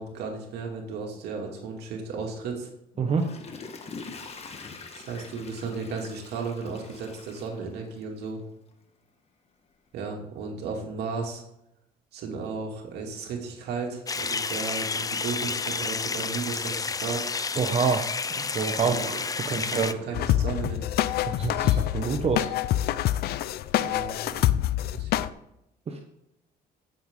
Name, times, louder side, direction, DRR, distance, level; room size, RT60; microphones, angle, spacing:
voice 1, 0.0-2.7 4.9-8.4 9.9-11.4 12.1-17.3 18.8-19.2 19.5-20.9 23.8-24.5 24.9-25.2, right 4 dB, 75° right, 1 dB, 2.5 m, -34 dB
Water / Toilet flush, 2.9-8.2 8.7-8.8, left 4 dB, 40° left, 1.4 m, -44 dB
voice 2, 3.0-3.3 17.6-18.1 18.4-19.2 19.5-19.9 21.2-22.5 25.9-26.0, right 5 dB, 35° right, 4 dB, 1.1 m, -27 dB
sound 1, 14.1-19.9, left 4 dB, 20° left, 0.5 m, -30 dB
sound 2, 20.1-25.3, left 13 dB, 70° left, 0.5 m, -26 dB
15.0 x 7.3 x 3.8 m, 0.84 s
cardioid pair, 110°, 17 cm